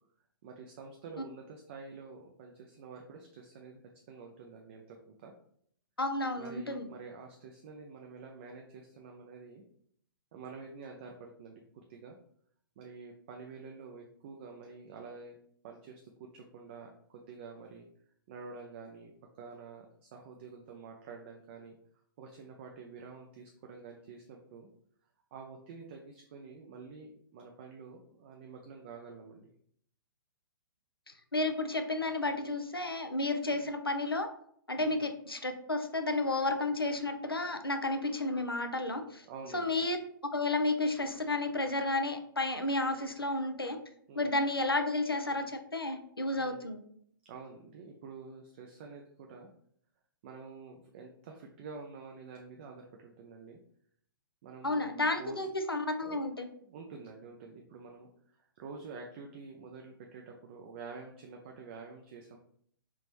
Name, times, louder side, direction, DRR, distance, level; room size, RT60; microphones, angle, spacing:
voice 1, 0.4-3.8 4.1-5.3 6.4-9.6 10.3-12.2 12.8-15.4 15.6-17.9 18.3-21.8 22.2-24.7 25.3-29.5 33.5-33.7 34.8-35.0 39.2-39.8 44.1-44.3 46.4-46.6 47.2-49.5 50.2-53.6 54.4-54.8 55.2-55.4 56.0-56.2 56.6-62.4, right 4 dB, 30° right, 2 dB, 0.4 m, -48 dB
voice 2, 6.0-6.8 31.1-34.3 34.7-39.3 39.5-40.0 40.3-43.8 44.1-46.8 54.6-56.5, left 2 dB, 90° left, 7 dB, 0.5 m, -32 dB
3.4 x 2.9 x 2.9 m, 0.65 s
figure-of-eight pair, 120°, 12 cm